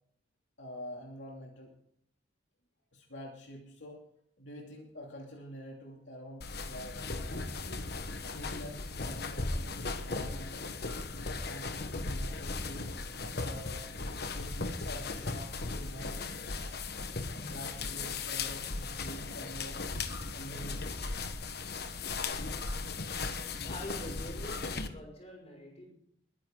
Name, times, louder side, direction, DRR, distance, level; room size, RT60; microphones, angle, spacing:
voice 1, 0.6-1.7 2.9-4.1 4.4-7.6 8.3-10.6 11.3-12.9 13.2-13.9 14.3-16.3 17.3-19.9 20.3-21.3, equal, 70° left, -1 dB, 2.7 m, -47 dB
sound 1, 6.4-24.9, left 3 dB, 55° left, 1.2 m, -37 dB
voice 2, 23.7-25.9, left 1 dB, 35° left, 0 dB, 5.9 m, -45 dB
21.5 x 10.5 x 3.8 m, 0.68 s
head